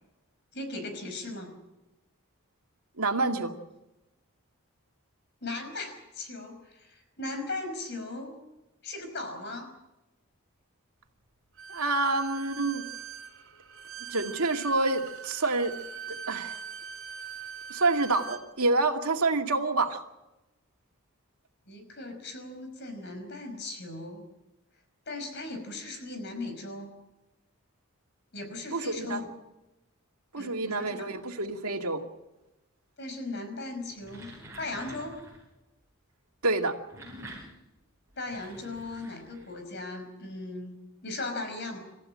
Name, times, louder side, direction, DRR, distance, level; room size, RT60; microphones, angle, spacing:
voice 1, 0.5-1.5 5.4-8.4 8.8-9.7 21.7-24.2 25.1-26.9 28.3-29.3 30.4-31.1 33.0-34.3 34.6-35.2 38.2-40.8 41.0-41.8, left 2 dB, 50° left, 7 dB, 5.5 m, -38 dB
voice 2, 3.0-3.5 11.7-12.8 14.1-15.7 16.1-16.6 17.7-20.0 28.7-29.2 30.3-32.0 36.4-36.7, right 3 dB, 90° right, 3 dB, 2.3 m, -27 dB
Bowed string instrument, 11.6-18.4, right 7 dB, 60° right, 3.7 m, -42 dB
sound 1, 33.8-35.5 36.6-39.7, right 1 dB, 10° right, 7.5 m, -48 dB
28.0 x 14.5 x 7.6 m, 0.99 s
head